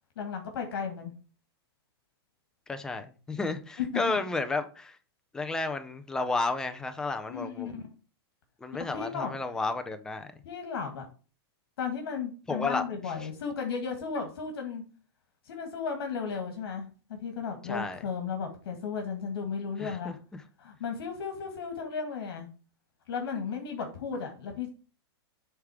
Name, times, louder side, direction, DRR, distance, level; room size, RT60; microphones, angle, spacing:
voice 1, 0.1-1.1 3.8-4.2 7.3-7.8 8.9-9.3 10.4-11.1 11.8-14.8 15.4-20.1 20.6-22.5 23.1-24.7, left 6 dB, 65° left, 1.7 m, -35 dB
voice 2, 2.7-5.0 5.3-7.7 8.6-10.3 12.5-12.8 17.7-18.0 19.8-20.1, left 3 dB, 5° left, 0.5 m, -32 dB
7.9 x 3.6 x 4.8 m
supercardioid pair, 160°, 13 cm